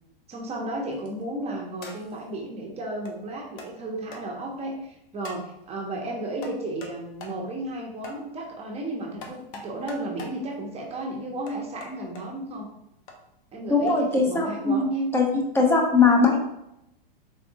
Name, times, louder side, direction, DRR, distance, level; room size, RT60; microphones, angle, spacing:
voice 1, 0.3-12.7 13.5-15.1, right 1 dB, 20° right, -1 dB, 0.8 m, -33 dB
sound 1, 0.9-1.2 1.8-2.2 3.1-3.2 3.6-3.7 4.1-4.2 5.2-5.5 6.4-7.0 7.2-7.4 8.0-8.2 9.2-10.4 11.5-12.2 13.1-13.2 13.9-14.0, left 3 dB, 60° left, 1.0 m, -42 dB
voice 2, 13.7-14.9 15.1-15.3 15.5-16.4, left 4 dB, 10° left, 0 dB, 0.8 m, -20 dB
4.2 x 3.9 x 2.7 m, 0.84 s
hypercardioid pair, 115°, 29 cm